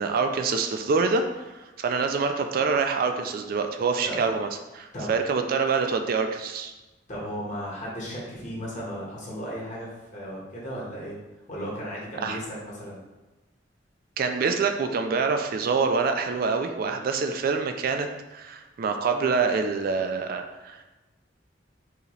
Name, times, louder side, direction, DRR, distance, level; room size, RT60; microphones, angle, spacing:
voice 1, 0.0-6.7 12.2-12.4 14.2-20.9, right 4 dB, 55° right, 6 dB, 0.3 m, -26 dB
voice 2, 7.1-11.2 11.5-13.0, equal, 40° left, -6 dB, 1.4 m, -35 dB
4.7 x 2.8 x 3.2 m, 1.1 s
head